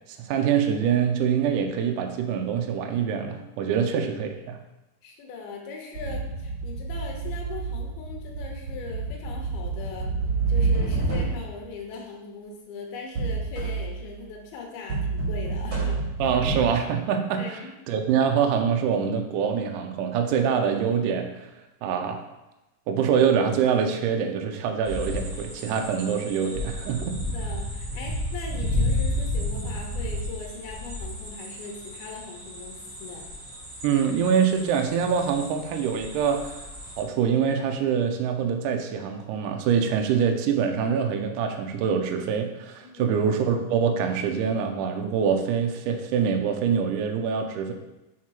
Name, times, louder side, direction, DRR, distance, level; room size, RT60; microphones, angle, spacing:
voice 1, 0.2-4.6 16.2-17.6 17.9-21.5 21.8-22.2 22.9-27.2 33.8-36.6 37.0-47.7, right 7 dB, 90° right, 5 dB, 1.8 m, -25 dB
voice 2, 5.0-10.1 10.5-16.4 17.4-17.7 27.2-33.2 42.8-43.2, left 4 dB, 85° left, 1 dB, 2.8 m, -40 dB
sound 1, 5.9-11.6 13.2-14.0 14.9-16.6, right 4 dB, 45° right, 2.9 m, -28 dB
sound 2, 24.8-37.0, left 1 dB, 60° right, 1.1 m, -32 dB
6.1 x 3.7 x 4.4 m, 0.99 s
omnidirectional pair, 4.4 m